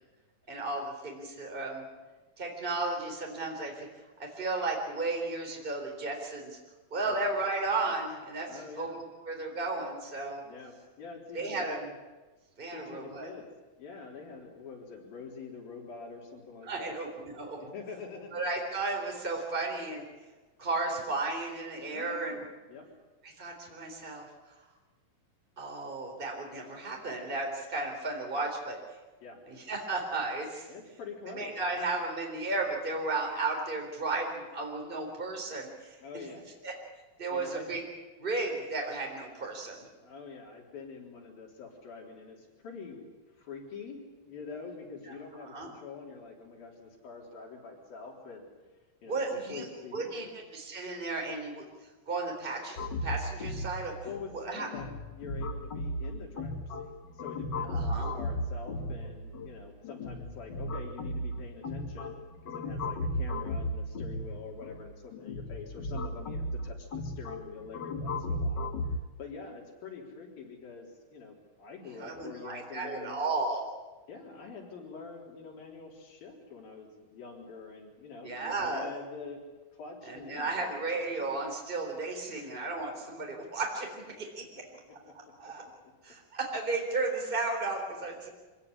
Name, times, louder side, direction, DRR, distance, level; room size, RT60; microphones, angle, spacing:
voice 1, 0.5-1.9 2.4-3.9 4.2-6.5 6.9-8.5 8.8-10.4 11.3-11.8 12.6-13.3 16.7-17.7 18.3-20.1 20.6-22.4 23.2-24.3 25.6-28.8 29.5-30.7 31.3-36.2 36.6-36.7 37.2-37.8 38.2-39.9 45.4-45.7 49.0-49.7 49.9-50.3 50.5-51.6 52.1-53.9 54.3-54.7 57.6-58.1 71.9-73.7 78.2-78.9 80.1-84.4 85.4-85.6 86.0-88.3, right 3 dB, 15° right, 1 dB, 3.9 m, -34 dB
voice 2, 8.5-9.0 10.4-11.9 12.7-13.5 13.8-17.0 17.6-18.3 21.9-22.4 22.7-22.9 29.2-29.4 30.7-31.6 36.0-36.4 37.3-37.7 40.0-44.0 44.3-48.5 49.0-50.3 54.0-56.9 57.1-62.2 62.4-68.7 69.2-73.2 74.1-79.4 79.7-80.8 82.3-82.5 85.1-85.2 85.4-85.5, left 5 dB, 85° left, -1 dB, 5.7 m, -45 dB
sound 1, 52.8-69.0, left 1 dB, 50° left, 1.3 m, -36 dB
25.5 x 17.0 x 9.8 m, 1.2 s
omnidirectional pair, 4.1 m